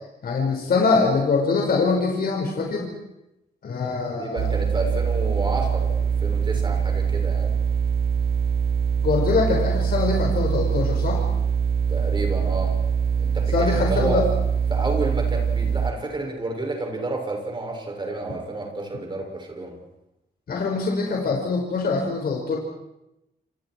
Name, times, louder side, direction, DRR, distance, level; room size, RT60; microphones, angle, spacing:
voice 1, 0.2-2.9 3.6-4.5 9.0-11.2 13.5-14.2 20.5-22.6, left 4 dB, 60° left, -1 dB, 5.5 m, -23 dB
voice 2, 4.2-7.6 11.9-12.8 13.2-14.2 14.7-19.8, right 2 dB, 30° right, 2 dB, 6.9 m, -30 dB
sound 1, 4.4-15.9, right 7 dB, 65° right, 0.9 m, -23 dB
28.5 x 28.5 x 4.7 m, 0.88 s
wide cardioid pair, 150°, 17 cm